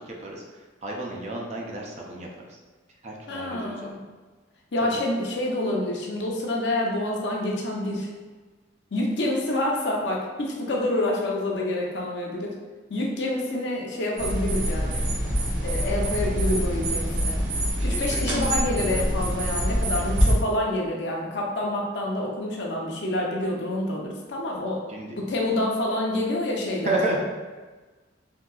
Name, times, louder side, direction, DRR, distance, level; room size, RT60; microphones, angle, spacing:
voice 1, 0.0-2.6 3.0-4.0 4.8-4.9 17.7-18.5 24.9-25.2 26.8-27.2, right 2 dB, 35° right, -1 dB, 0.5 m, -32 dB
voice 2, 3.3-4.0 4.7-8.1 8.9-12.5 12.9-15.0 15.6-17.4 17.8-24.8 25.1-26.9, left 1 dB, 65° left, -1 dB, 0.6 m, -27 dB
sound 1, 14.2-20.4, equal, 85° right, 0.9 m, -25 dB
3.6 x 2.7 x 2.3 m, 1.3 s
head